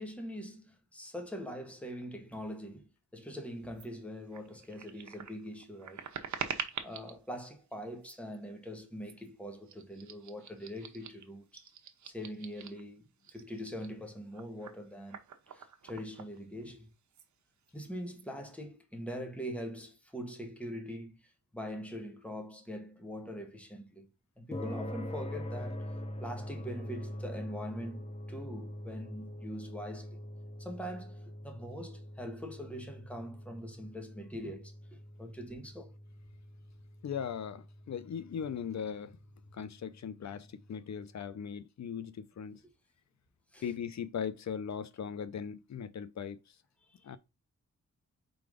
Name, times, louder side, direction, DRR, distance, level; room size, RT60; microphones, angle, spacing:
voice 1, 0.0-6.0 6.8-11.6 12.0-15.2 15.5-16.9 17.7-24.1 24.4-25.9 26.2-30.2 30.6-34.7 35.2-36.0 43.5-43.7 46.9-47.0, equal, 5° left, 1.6 m, -43 dB
sound 1, 3.7-3.9 4.3-7.2 8.0-8.4 9.0-9.3 9.6-12.9 13.2-16.8 17.1-17.3 17.6-18.3, right 7 dB, 70° right, 1.0 m, -45 dB
sound 2, 24.5-41.0, left 1 dB, 20° left, 1.1 m, -44 dB
voice 2, 37.0-39.2 39.5-42.6 43.6-46.4 47.0-47.2, left 7 dB, 65° left, 0.7 m, -39 dB
4.5 x 4.0 x 5.1 m
cardioid pair, 75°, 30 cm